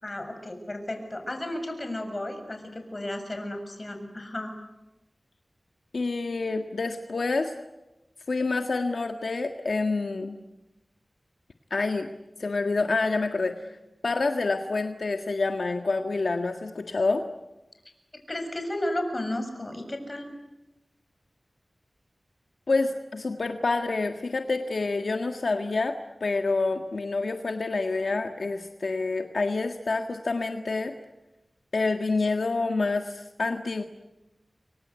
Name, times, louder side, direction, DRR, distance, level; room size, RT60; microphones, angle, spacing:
voice 1, 0.0-4.5 18.3-20.3, left 1 dB, 35° left, 6 dB, 7.0 m, -33 dB
voice 2, 5.9-7.5 8.3-10.4 11.7-12.1 12.4-13.7 14.0-17.2 22.7-25.9 26.2-30.9 31.7-33.8, left 3 dB, 80° left, 5 dB, 1.7 m, -27 dB
29.0 x 24.5 x 8.3 m, 1.0 s
wide cardioid pair, 55°, 0 cm